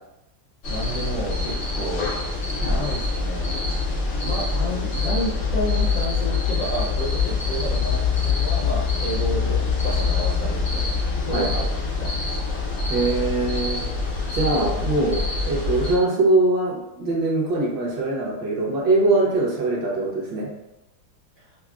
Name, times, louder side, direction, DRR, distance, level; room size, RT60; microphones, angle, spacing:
sound 1, 0.6-16.0, left 4 dB, 85° left, 0.5 m, -25 dB
voice 1, 0.7-2.1 2.6-3.5 4.2-10.9 11.2-12.4 21.4-21.6, right 1 dB, 65° left, -6 dB, 0.9 m, -31 dB
voice 2, 12.9-13.8 14.3-15.2 15.4-20.5, right 2 dB, 70° right, -4 dB, 1.6 m, -22 dB
5.7 x 2.0 x 2.4 m, 0.90 s
omnidirectional pair, 2.1 m